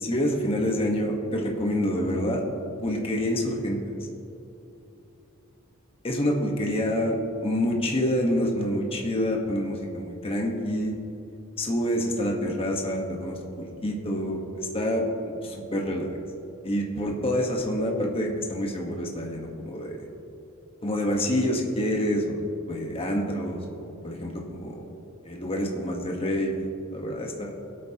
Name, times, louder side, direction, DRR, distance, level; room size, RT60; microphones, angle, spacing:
voice 1, 0.0-2.4 2.8-3.8 6.0-11.0 11.6-16.2 16.6-20.1 20.8-24.8 25.2-26.5 26.9-27.6, equal, 25° left, 0 dB, 1.3 m, -27 dB
21.5 x 8.6 x 2.9 m, 2.8 s
head